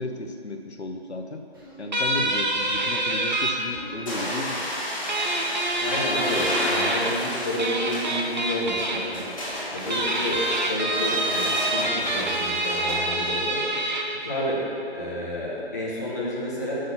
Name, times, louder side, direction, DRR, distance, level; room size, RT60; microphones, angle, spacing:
voice 1, 0.0-1.4 1.8-4.6, left 2 dB, 85° left, 4 dB, 0.9 m, -34 dB
Human voice, 1.5-1.8 2.7-3.1 3.7-4.0 5.6-5.9 7.1-7.4 8.6-8.9 10.3-10.6 11.3-11.6 12.0-12.3, right 1 dB, 20° right, 1.3 m, -47 dB
sound 1, 1.9-3.5 5.1-7.1 7.6-9.0 9.8-14.0, right 1 dB, 45° right, 0.9 m, -26 dB
sound 2, 4.1-13.0, equal, 30° left, 2.2 m, -32 dB
voice 2, 5.8-9.2 9.7-13.6 14.1-14.6 14.9-16.7, left 1 dB, 15° left, -8 dB, 0.9 m, -30 dB
6.4 x 5.7 x 7.0 m, 2.7 s
figure-of-eight pair, 165°, 32 cm